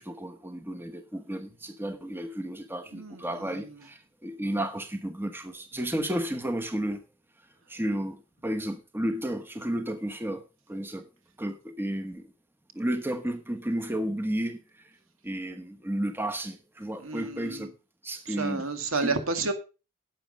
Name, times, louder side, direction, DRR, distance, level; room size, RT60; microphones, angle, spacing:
voice 1, 0.0-7.0 7.4-11.1 11.4-12.3 12.7-15.0 15.2-17.7 18.0-18.6 19.0-19.2, right 1 dB, 10° right, 1.0 m, -32 dB
voice 2, 2.9-3.5 17.0-17.7 18.3-19.5, right 3 dB, 75° right, 2.1 m, -31 dB
11.5 x 7.5 x 5.3 m
head